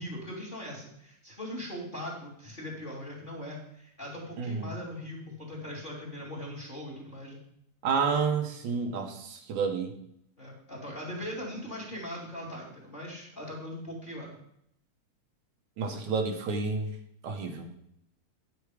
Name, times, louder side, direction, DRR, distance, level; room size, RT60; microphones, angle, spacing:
voice 1, 0.0-7.4 10.4-14.3, left 1 dB, 15° left, -2 dB, 2.6 m, -40 dB
voice 2, 4.4-4.7 7.8-10.0 15.8-16.9 17.2-17.8, right 5 dB, 75° right, 3 dB, 2.5 m, -30 dB
9.7 x 8.4 x 4.9 m, 0.73 s
omnidirectional pair, 3.4 m